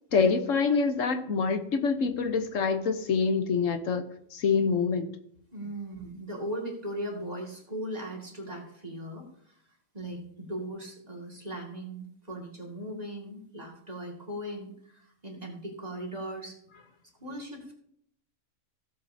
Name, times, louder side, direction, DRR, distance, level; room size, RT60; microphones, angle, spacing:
voice 1, 0.1-5.1, left 5 dB, 65° left, 7 dB, 1.3 m, -26 dB
voice 2, 5.5-9.6 9.9-16.6 17.2-17.7, right 1 dB, 30° right, -2 dB, 2.3 m, -38 dB
17.0 x 7.5 x 2.8 m, 0.70 s
omnidirectional pair, 1.5 m